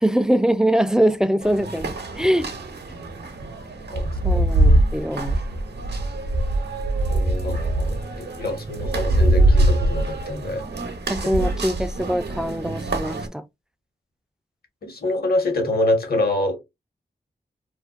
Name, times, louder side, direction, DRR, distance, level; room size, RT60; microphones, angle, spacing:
voice 1, 0.0-2.5 4.2-5.4 11.1-13.4, equal, 5° right, 0.4 m, -22 dB
sound 1, 1.4-13.3, right 1 dB, 70° right, 0.7 m, -23 dB
voice 2, 3.9-4.4 7.1-10.6 14.8-16.6, left 1 dB, 60° left, 1.2 m, -26 dB
2.5 x 2.1 x 2.4 m
cardioid pair, 45°, 18 cm